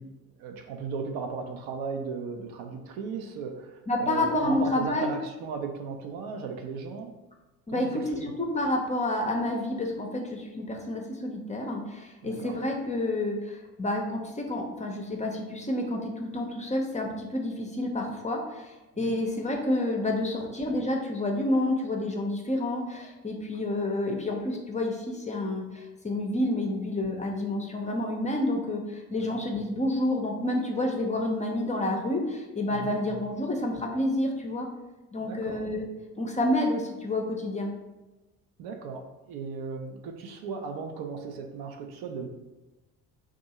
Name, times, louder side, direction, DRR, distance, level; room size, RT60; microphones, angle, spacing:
voice 1, 0.0-7.2 7.7-8.3 12.2-12.6 18.9-19.2 20.4-20.5 29.2-29.5 32.7-33.0 35.2-35.6 38.6-42.3, right 5 dB, 60° right, 4 dB, 0.6 m, -37 dB
voice 2, 3.9-5.1 7.7-34.7 35.1-35.9 36.2-37.7, left 1 dB, 15° left, 1 dB, 0.5 m, -29 dB
2.6 x 2.4 x 4.1 m, 1.1 s
hypercardioid pair, 60°, 43 cm